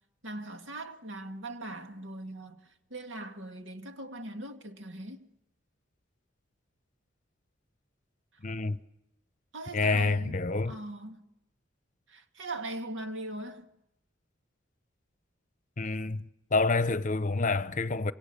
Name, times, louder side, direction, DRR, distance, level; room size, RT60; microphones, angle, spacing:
voice 1, 0.2-5.3 9.5-10.4 10.7-11.2 12.1-13.7, right 2 dB, 70° right, 2.2 m, -40 dB
voice 2, 8.4-8.8 9.7-10.7 15.8-16.2 16.5-18.1, left 3 dB, 40° left, 0.9 m, -27 dB
27.0 x 26.0 x 7.0 m
head